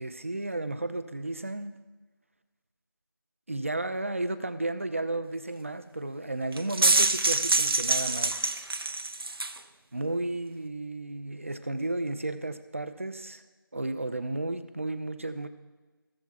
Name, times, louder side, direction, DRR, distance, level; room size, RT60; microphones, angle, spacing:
voice 1, 0.0-1.8 3.5-8.7 9.9-13.4 13.7-15.5, right 2 dB, 35° right, 10 dB, 0.5 m, -33 dB
sound 1, 6.5-9.6, right 3 dB, 85° right, 0.7 m, -25 dB
15.5 x 7.3 x 2.3 m, 1.3 s
figure-of-eight pair, 175°, 12 cm